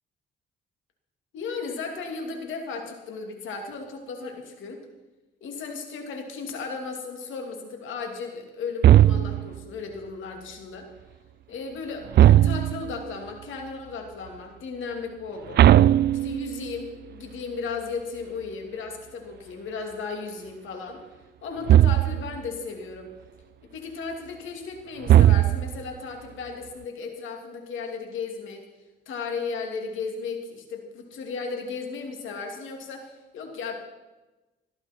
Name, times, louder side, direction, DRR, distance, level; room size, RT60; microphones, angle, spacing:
voice 1, 1.3-4.8 5.4-10.9 11.5-15.7 16.1-21.0 21.4-23.1 23.7-28.6 29.1-33.7, left 4 dB, 80° left, 3 dB, 2.8 m, -35 dB
sound 1, 8.8-9.6 12.1-13.0 15.6-16.7 21.7-22.4 25.1-25.9, right 12 dB, 55° right, 0.4 m, -17 dB
16.5 x 13.0 x 4.5 m, 1.1 s
cardioid pair, 90°, 20 cm